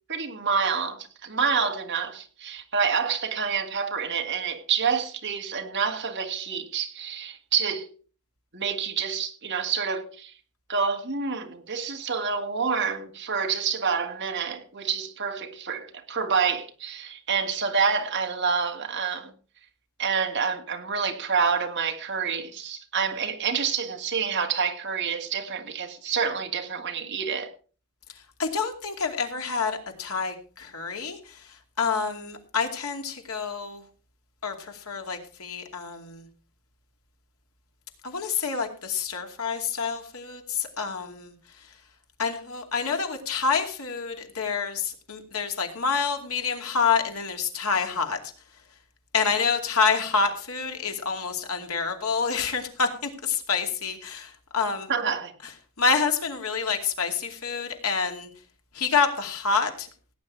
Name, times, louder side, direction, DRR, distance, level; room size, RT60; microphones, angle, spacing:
voice 1, 0.1-7.9 8.5-10.3 10.7-19.3 20.0-27.5 54.9-55.3, right 6 dB, 55° right, 1.9 m, -28 dB
voice 2, 28.4-31.4 31.8-33.8 34.4-36.2 38.0-41.3 42.2-48.2 49.1-54.9 55.8-58.3 58.7-59.9, left 5 dB, 80° left, 2.6 m, -27 dB
17.5 x 9.3 x 4.6 m
head